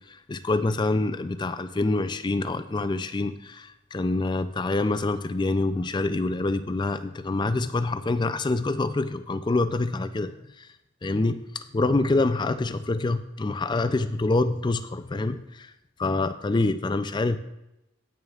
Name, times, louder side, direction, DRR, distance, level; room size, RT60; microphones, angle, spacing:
voice 1, 0.1-10.7 11.0-15.7 16.0-17.4, left 2 dB, 20° left, 11 dB, 0.3 m, -26 dB
19.0 x 6.4 x 2.4 m, 0.90 s
head